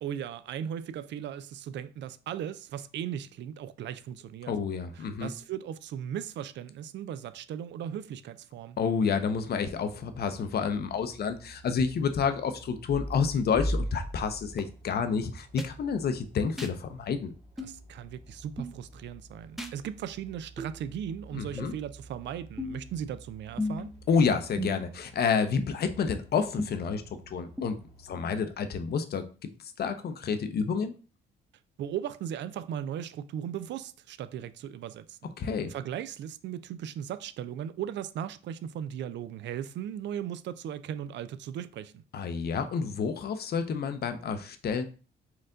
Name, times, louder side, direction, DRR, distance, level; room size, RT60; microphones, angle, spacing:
voice 1, 0.0-4.5 5.0-8.8 17.6-23.9 31.8-35.3 35.7-42.0, right 9 dB, 65° right, 0.4 m, -37 dB
voice 2, 4.5-5.3 8.8-17.3 21.3-21.7 24.1-27.8 28.0-29.2 29.6-30.9 35.4-35.7 42.1-44.8, left 6 dB, 55° left, 0.6 m, -29 dB
sound 1, 9.2-28.4, right 3 dB, 30° right, 1.4 m, -53 dB
sound 2, 12.9-14.6 15.6-15.7 16.6-16.7 17.6-17.8 18.6-18.8 19.6-19.8 20.6-20.7 21.6-21.7 22.6-22.9 23.6-23.9 24.6-25.0 25.6-25.7 26.6-26.7 27.6-27.7, left 1 dB, ahead, 0.6 m, -34 dB
4.4 x 2.5 x 3.7 m
cardioid pair, 90°, 20 cm